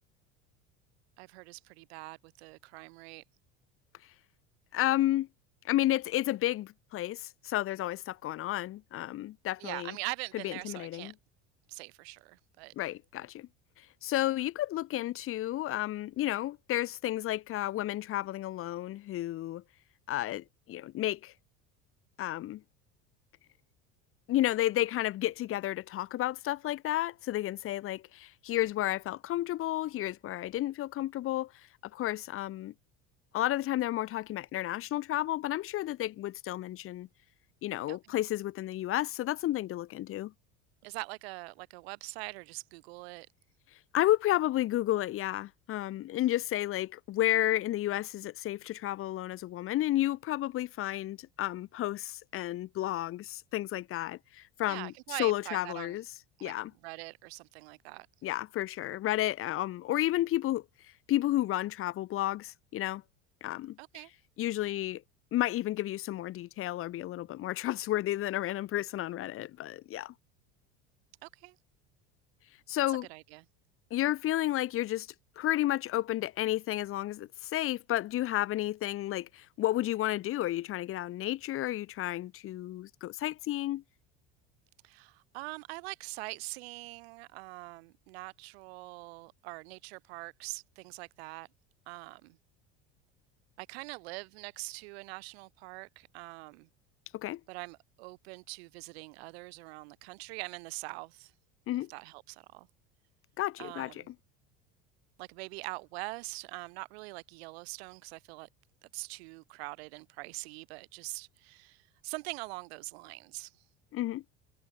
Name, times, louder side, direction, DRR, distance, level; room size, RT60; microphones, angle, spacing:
voice 1, 1.2-3.2 9.6-11.1 11.7-12.7 37.9-38.2 40.8-43.3 54.6-56.0 56.4-56.5 56.8-58.1 63.8-64.1 71.2-71.6 72.9-73.4 84.8-91.5 91.9-92.4 93.6-96.7 97.5-101.3 101.7-102.7 103.6-104.1 105.2-108.5 108.8-113.5, right 25 dB, 80° right, 6.5 m, -43 dB
voice 2, 4.7-5.3 5.6-10.0 10.4-11.1 12.8-13.5 14.0-19.6 20.1-21.3 22.2-22.6 24.3-31.5 31.9-32.7 33.3-37.1 37.6-40.3 43.9-54.9 55.2-56.0 56.4-56.7 58.2-60.6 61.1-63.0 63.4-63.8 64.4-65.0 65.3-70.1 72.7-73.1 73.9-75.1 75.4-83.8 97.1-97.4 101.7-101.9 103.4-104.1 113.9-114.2, left 14 dB, 45° left, 1.3 m, -32 dB
supercardioid pair, 120°, 31 cm